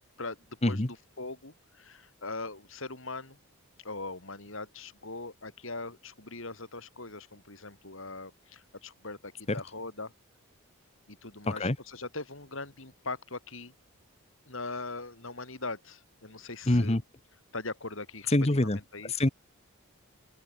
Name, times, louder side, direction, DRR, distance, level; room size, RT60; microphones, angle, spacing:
voice 1, 1.2-3.4 3.8-10.1 11.1-13.7 14.5-17.0 17.5-18.4 18.6-19.2, left 3 dB, 60° left, 3.5 m, -40 dB
voice 2, 11.5-11.8 16.7-17.0 18.3-18.8 19.0-19.3, left 1 dB, 30° left, 1.2 m, -25 dB
open air
head